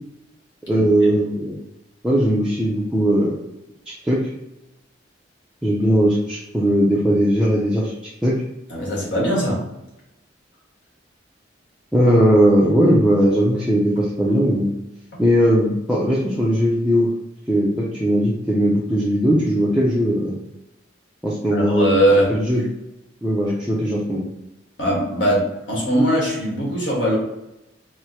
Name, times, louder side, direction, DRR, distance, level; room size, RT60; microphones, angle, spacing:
voice 1, 0.7-1.6 2.0-3.4 4.0-4.2 5.6-7.9 8.2-8.4 11.9-14.7 15.2-17.1 17.5-20.4 21.2-22.6 23.2-24.2, equal, 5° right, -6 dB, 0.5 m, -18 dB
voice 2, 8.7-9.6 21.5-22.3 24.8-27.1, equal, 70° left, -3 dB, 1.4 m, -20 dB
4.5 x 2.0 x 2.8 m, 0.90 s
head